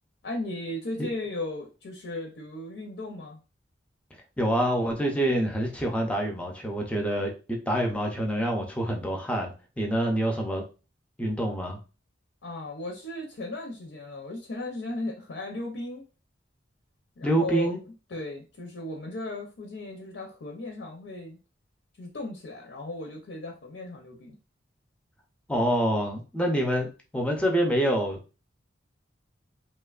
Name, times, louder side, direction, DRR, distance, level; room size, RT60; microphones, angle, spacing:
voice 1, 0.2-3.4 12.4-16.1 17.2-17.7 18.1-21.4 22.0-24.4, left 2 dB, 75° left, 0 dB, 0.6 m, -36 dB
voice 2, 4.4-9.5 9.8-10.6 11.2-11.8 17.2-17.8 25.5-28.4, right 1 dB, 5° left, 1 dB, 0.4 m, -26 dB
2.9 x 2.1 x 2.3 m, 0.33 s
head